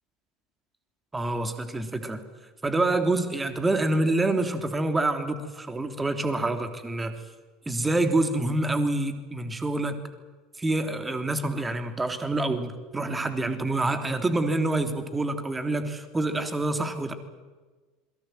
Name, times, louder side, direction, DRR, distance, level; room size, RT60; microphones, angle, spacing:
voice 1, 1.1-2.2 2.6-7.1 7.7-9.9 10.6-17.1, right 2 dB, 15° right, 7 dB, 3.3 m, -27 dB
27.5 x 22.5 x 7.9 m, 1.3 s
figure-of-eight pair, 75°, 0 cm